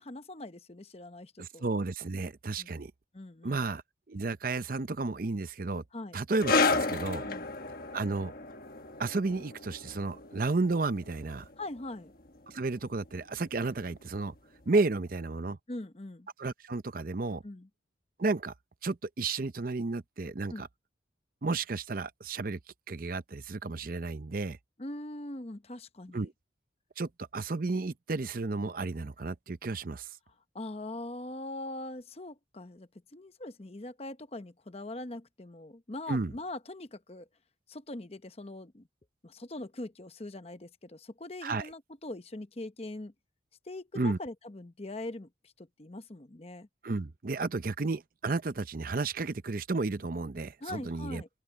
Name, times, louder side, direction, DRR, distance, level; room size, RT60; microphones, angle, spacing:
voice 1, 0.0-1.6 2.6-2.7 3.1-3.6 5.9-6.2 7.2-7.5 11.6-12.1 15.7-16.3 17.4-17.7 20.5-20.7 24.8-26.3 30.5-37.3 37.7-38.9 39.2-43.1 43.6-46.7 50.6-51.3, left 2 dB, 30° left, 0.8 m, -42 dB
voice 2, 1.4-2.9 3.4-3.8 4.1-5.8 6.1-7.3 7.9-8.3 9.0-11.5 12.5-14.3 14.7-15.6 16.4-17.4 18.2-18.5 18.8-20.7 21.4-22.6 22.9-24.6 26.1-26.3 27.0-30.1 36.1-36.3 41.4-41.7 43.9-44.2 46.8-51.2, right 3 dB, 45° right, 0.6 m, -32 dB
sound 1, 6.4-13.4 13.7-13.9 14.6-14.7, left 3 dB, 50° left, 1.3 m, -33 dB
head